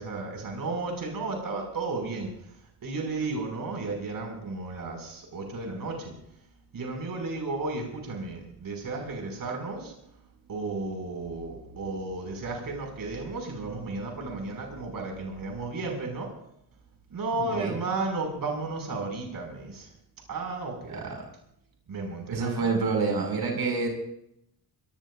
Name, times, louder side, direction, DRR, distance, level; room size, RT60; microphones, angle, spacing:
voice 1, 0.0-2.3 2.8-6.1 6.7-9.9 10.5-16.3 17.1-19.9 20.3-21.0 21.9-22.7, right 3 dB, 65° right, 2 dB, 5.5 m, -33 dB
voice 2, 17.4-17.8 20.9-21.2 22.3-23.9, right 4 dB, 85° right, 2 dB, 5.8 m, -28 dB
23.5 x 19.0 x 2.5 m, 0.75 s
wide cardioid pair, 140°, 37 cm